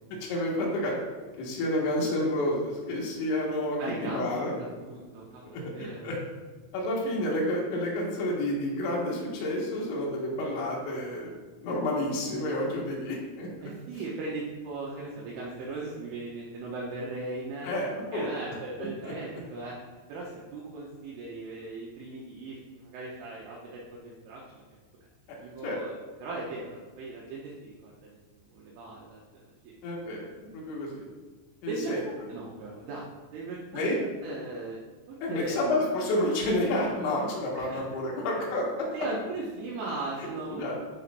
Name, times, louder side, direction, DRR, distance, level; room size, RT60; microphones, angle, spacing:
voice 1, 0.1-0.9 1.4-4.5 5.5-6.2 6.7-11.3 11.6-13.7 17.6-18.3 19.0-19.1 25.6-25.8 29.8-30.3 30.5-31.1 31.6-32.0 33.7-34.0 35.2-38.9 40.5-40.8, left 1 dB, 70° left, -4 dB, 3.6 m, -30 dB
voice 2, 3.8-4.3 4.6-6.1 13.6-17.7 18.1-19.8 20.1-24.6 25.3-25.9 26.2-29.7 31.7-31.9 32.3-34.8 35.1-35.6 37.5-37.8 38.9-40.8, right 3 dB, 80° right, -5 dB, 3.2 m, -38 dB
11.0 x 4.6 x 2.6 m, 1.4 s
omnidirectional pair, 5.9 m